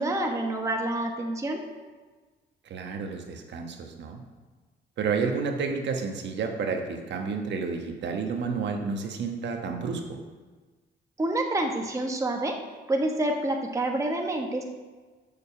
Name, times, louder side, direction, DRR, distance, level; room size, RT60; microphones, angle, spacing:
voice 1, 0.0-1.6 11.2-12.6 12.9-14.6, right 1 dB, 15° right, 2 dB, 1.0 m, -27 dB
voice 2, 2.6-4.2 5.0-10.0, right 5 dB, 70° right, 3 dB, 1.2 m, -30 dB
6.8 x 5.3 x 7.0 m, 1.4 s
cardioid pair, 95°, 19 cm